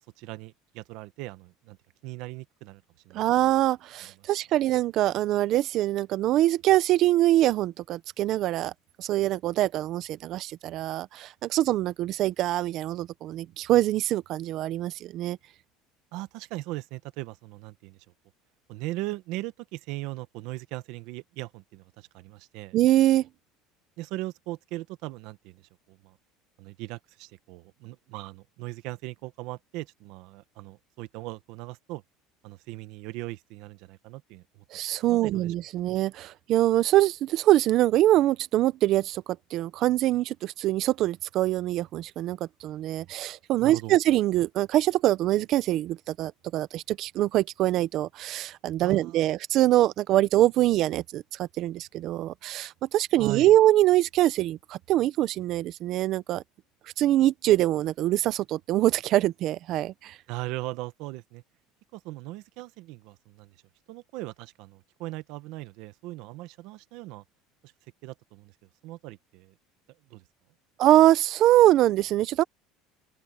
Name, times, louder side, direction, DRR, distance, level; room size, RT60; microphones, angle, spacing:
voice 1, 0.2-1.8 2.0-3.5 4.2-4.3 16.1-18.0 18.7-22.8 24.0-26.2 26.6-32.0 32.4-34.6 35.1-35.5 43.6-44.0 48.8-49.3 53.2-53.6 60.3-61.4 61.9-63.6 63.9-67.2 67.6-67.7 68.0-68.5 68.8-69.5 70.1-70.2, right 18 dB, 60° right, 1.0 m, -39 dB
voice 2, 3.1-8.7 9.0-15.4 22.7-23.3 34.7-56.4 57.0-60.2 70.8-72.4, right 14 dB, 45° right, 0.7 m, -24 dB
open air
cardioid pair, 160°, 0 cm